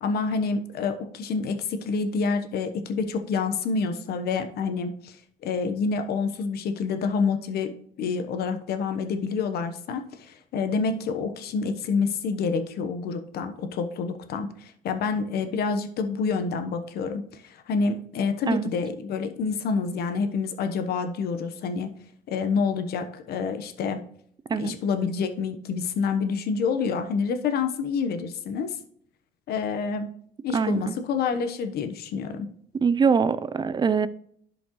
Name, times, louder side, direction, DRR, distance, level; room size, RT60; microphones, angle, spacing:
voice 1, 0.0-5.2 5.4-21.9 22.3-24.0 24.5-28.8 29.5-30.1 30.4-32.5, left 5 dB, 65° left, 1.0 m, -28 dB
voice 2, 30.5-31.0 32.8-34.1, right 6 dB, 25° right, 0.4 m, -23 dB
11.5 x 5.1 x 3.0 m
cardioid pair, 110°, 17 cm